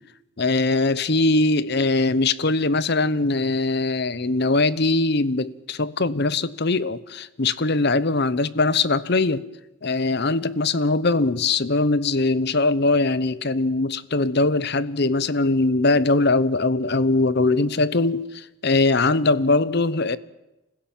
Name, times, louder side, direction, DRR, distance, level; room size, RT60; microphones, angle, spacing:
voice 1, 0.4-9.4 9.8-20.2, left 3 dB, 50° left, 0.9 m, -21 dB
25.0 x 16.5 x 9.0 m
head